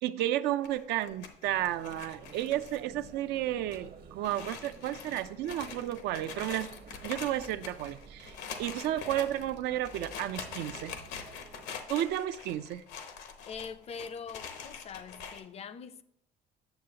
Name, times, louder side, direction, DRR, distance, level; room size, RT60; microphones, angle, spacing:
voice 1, 0.0-6.7 7.0-11.0 11.9-12.8, right 13 dB, 85° right, 0.5 m, -32 dB
sound 1, 0.6-3.1 3.4-3.5 3.7-3.8 4.2-15.4, left 6 dB, 90° left, 1.0 m, -44 dB
sound 2, 1.4-11.6, right 5 dB, 60° right, 0.9 m, -52 dB
voice 2, 13.5-16.0, left 6 dB, 40° left, 0.5 m, -43 dB
9.0 x 6.9 x 2.8 m
cardioid pair, 110°, 17 cm